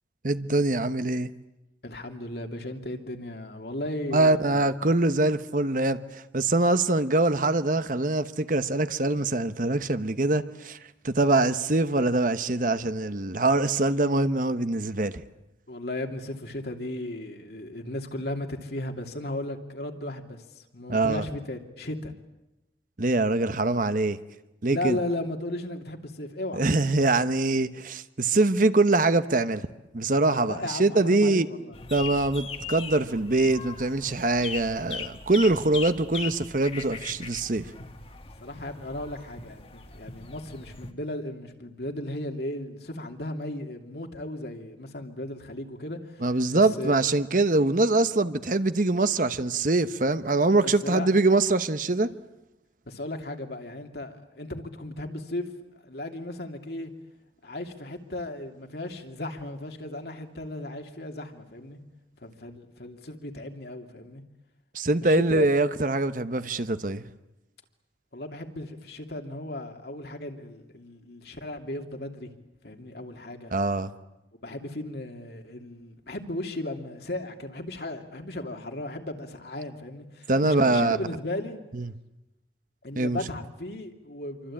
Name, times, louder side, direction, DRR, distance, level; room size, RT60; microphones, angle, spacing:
voice 1, 0.2-1.3 4.1-10.8 11.0-15.2 20.9-21.2 23.0-24.2 24.6-25.0 26.6-29.7 29.9-31.5 31.9-37.7 46.2-52.1 64.7-67.0 73.5-73.9 80.3-81.0 81.7-81.9 83.0-83.2, right 2 dB, 50° right, 11 dB, 1.0 m, -23 dB
voice 2, 1.8-4.6 15.7-22.1 24.7-26.6 30.4-31.8 38.4-47.0 50.6-51.1 52.9-55.5 55.7-56.9 57.4-61.8 62.2-64.2 65.0-65.5 68.1-72.3 72.6-73.5 74.4-81.6 82.8-84.5, left 1 dB, 65° left, 4 dB, 2.8 m, -36 dB
sound 1, 31.7-40.9, left 5 dB, 30° left, 1.6 m, -39 dB
27.5 x 24.5 x 8.8 m, 0.96 s
head